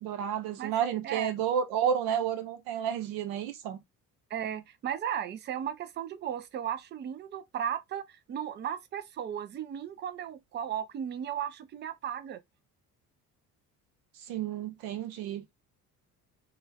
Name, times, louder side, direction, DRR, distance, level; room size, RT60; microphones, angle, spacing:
voice 1, 0.0-3.8 14.3-15.4, right 8 dB, 60° right, 0.8 m, -31 dB
voice 2, 4.3-12.4, right 9 dB, 25° right, 0.4 m, -35 dB
2.6 x 2.4 x 3.3 m
figure-of-eight pair, 55°, 45 cm